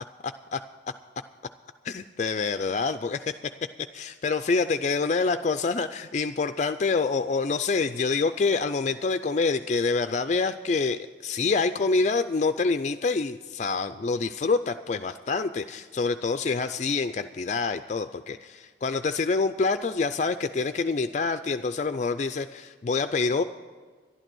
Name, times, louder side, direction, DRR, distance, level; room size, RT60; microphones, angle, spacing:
voice 1, 0.2-0.6 1.8-3.3 3.9-23.4, left 4 dB, 40° left, 10 dB, 0.3 m, -26 dB
11.5 x 11.5 x 6.2 m, 1.5 s
head